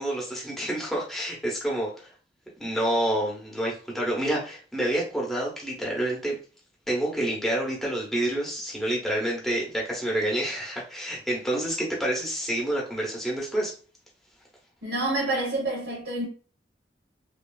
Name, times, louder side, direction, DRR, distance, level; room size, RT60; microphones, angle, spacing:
voice 1, 0.0-2.1 2.6-6.3 6.9-13.7, right 1 dB, ahead, 0.7 m, -28 dB
voice 2, 14.8-16.2, right 2 dB, 70° right, 0.9 m, -28 dB
2.9 x 2.4 x 2.3 m
head